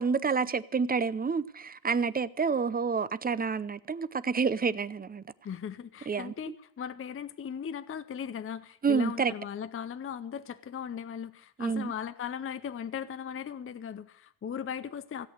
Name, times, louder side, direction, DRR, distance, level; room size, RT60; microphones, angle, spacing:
voice 1, 0.0-5.2 6.1-6.5 8.8-9.3 11.6-11.9, right 5 dB, 20° right, 0.6 m, -29 dB
voice 2, 5.4-15.3, left 8 dB, 30° left, 0.5 m, -38 dB
16.5 x 8.5 x 7.8 m
cardioid pair, 125°, 45 cm